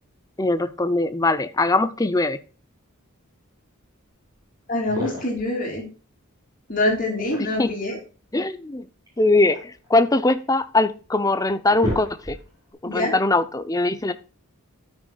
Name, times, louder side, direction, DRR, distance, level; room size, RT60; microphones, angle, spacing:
voice 1, 0.4-2.4 7.6-7.7 8.3-8.9 9.2-12.4 12.8-14.1, left 2 dB, 15° left, 12 dB, 0.5 m, -21 dB
sound 1, 4.3-4.4 4.8-5.5 6.9-7.8 9.1-10.4 11.0-11.1 11.5-12.6, left 1 dB, 15° right, 4.2 m, -33 dB
voice 2, 4.7-5.8 6.7-8.0 12.9-13.1, left 1 dB, 35° left, 0 dB, 3.2 m, -25 dB
13.0 x 6.3 x 2.3 m, 0.35 s
head